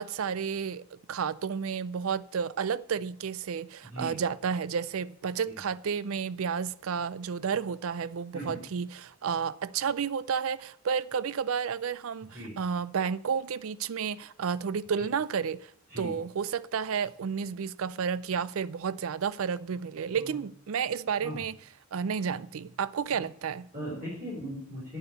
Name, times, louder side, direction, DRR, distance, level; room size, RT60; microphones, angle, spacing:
voice 1, 0.0-15.7 16.0-21.6 21.9-23.7, right 6 dB, 70° right, 0.4 m, -31 dB
voice 2, 3.8-4.2 5.5-5.6 8.3-8.6 12.2-12.6 15.0-15.1 15.9-16.1 20.1-20.4 21.2-21.4 23.7-25.0, equal, 40° right, 4.0 m, -39 dB
8.9 x 8.3 x 7.9 m
head